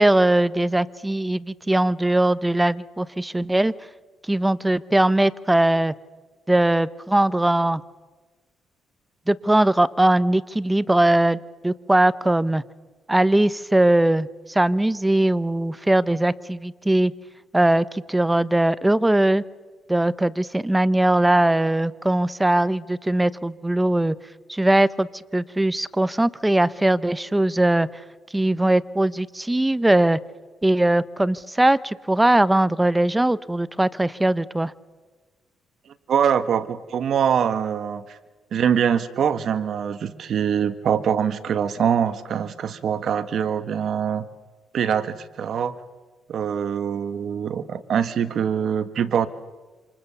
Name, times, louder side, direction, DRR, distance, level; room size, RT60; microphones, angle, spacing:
voice 1, 0.0-3.7 4.3-5.9 6.5-7.8 9.3-12.6 13.1-17.1 17.5-19.4 19.9-24.1 24.5-27.9 28.3-30.2 30.6-34.7, right 1 dB, 10° right, 17 dB, 0.8 m, -20 dB
voice 2, 36.1-38.2 38.5-44.3 44.7-45.8 46.3-49.3, right 8 dB, 65° right, 13 dB, 1.3 m, -23 dB
27.5 x 27.0 x 7.0 m, 1.3 s
cardioid pair, 90°, 0 cm